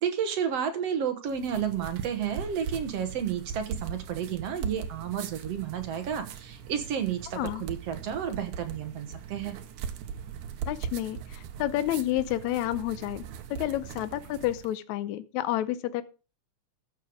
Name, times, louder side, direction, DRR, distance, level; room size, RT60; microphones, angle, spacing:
voice 1, 0.0-9.6, right 8 dB, 60° right, 8 dB, 2.1 m, -31 dB
sound 1, 1.3-14.7, right 7 dB, 80° right, 2.5 m, -40 dB
voice 2, 7.4-7.7 10.7-13.2 13.5-16.0, left 14 dB, 75° left, 14 dB, 2.0 m, -30 dB
14.0 x 6.6 x 5.1 m, 0.34 s
omnidirectional pair, 3.6 m